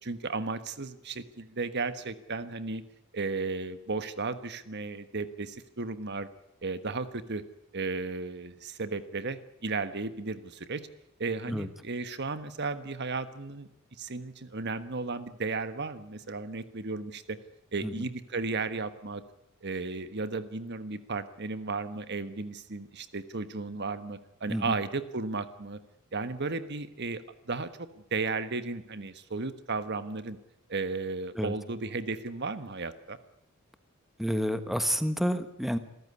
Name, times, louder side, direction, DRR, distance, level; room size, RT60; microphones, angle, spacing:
voice 1, 0.0-2.8 3.1-6.3 6.6-7.4 7.7-10.9 11.2-13.7 14.0-17.4 17.7-19.2 19.6-25.8 26.1-27.7 28.1-30.4 30.7-33.2, right 3 dB, 55° right, 12 dB, 1.4 m, -34 dB
voice 2, 34.2-35.8, equal, ahead, 10 dB, 1.3 m, -29 dB
27.5 x 14.0 x 9.7 m, 0.84 s
head